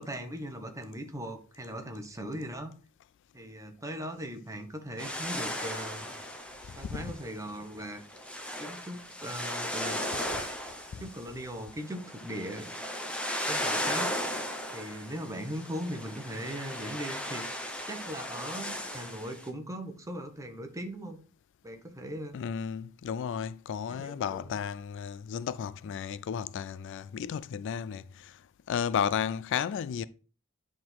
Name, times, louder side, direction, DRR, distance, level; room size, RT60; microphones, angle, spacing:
voice 1, 0.0-2.7 3.3-6.1 6.8-8.0 8.6-10.0 11.0-12.7 13.4-14.1 14.7-21.2 21.6-22.4 23.9-24.5, equal, 15° right, 1.1 m, -39 dB
sound 1, 5.0-19.5, equal, 5° left, 1.0 m, -36 dB
voice 2, 6.7-7.1 10.9-11.0 22.3-28.4 28.7-30.0, left 7 dB, 60° left, 0.3 m, -33 dB
9.8 x 3.8 x 4.5 m
head